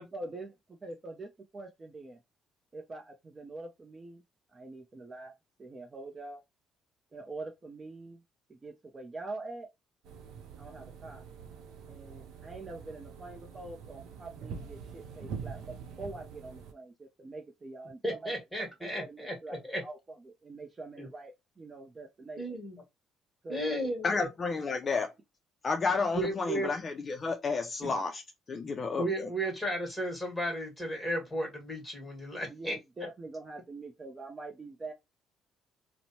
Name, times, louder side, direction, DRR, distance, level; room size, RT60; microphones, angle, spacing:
voice 1, 0.1-0.5 0.8-2.2 2.7-4.2 4.5-5.3 5.6-6.4 7.1-8.2 8.5-9.7 10.6-11.2 11.9-18.3 18.8-22.4 23.4-24.0 32.5-34.9, right 2 dB, 30° right, 0.5 m, -44 dB
sound 1, 10.0-16.7, right 6 dB, 80° right, 0.5 m, -45 dB
voice 2, 18.0-19.8 21.0-21.1 22.4-22.8 23.5-24.3 26.1-26.7 27.8-27.9 29.0-32.7, right 1 dB, 5° left, 1.5 m, -34 dB
voice 3, 24.0-25.1 25.6-28.2 28.5-29.3, left 4 dB, 35° left, 0.4 m, -31 dB
2.9 x 2.0 x 2.7 m
cardioid pair, 100°, 0 cm